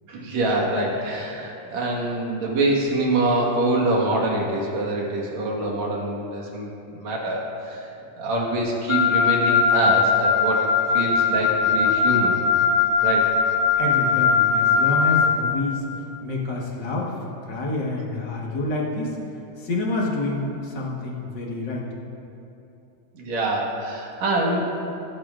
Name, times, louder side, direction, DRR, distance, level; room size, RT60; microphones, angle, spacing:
voice 1, 0.1-7.8 8.2-12.4 13.0-13.3 23.1-24.6, right 2 dB, 60° right, -2 dB, 2.7 m, -25 dB
Wind instrument woodwind instrument, 8.9-15.3, left 5 dB, 85° left, 2.4 m, -20 dB
voice 2, 13.8-15.8 16.2-19.2 19.6-21.8, left 2 dB, 45° left, -3 dB, 1.5 m, -28 dB
21.0 x 8.9 x 2.5 m, 2.8 s
omnidirectional pair, 3.6 m